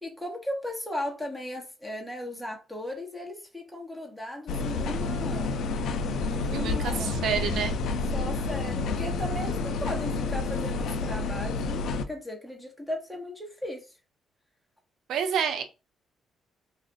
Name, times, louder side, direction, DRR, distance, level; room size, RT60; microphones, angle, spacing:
voice 1, 0.0-5.6 6.3-7.1 8.1-13.9, left 1 dB, ahead, 1.1 m, -37 dB
sound 1, 4.5-12.0, left 3 dB, 75° left, 0.4 m, -29 dB
voice 2, 6.5-7.8 15.1-15.6, right 7 dB, 75° right, 0.5 m, -28 dB
2.4 x 2.4 x 3.9 m
cardioid pair, 90°, 0 cm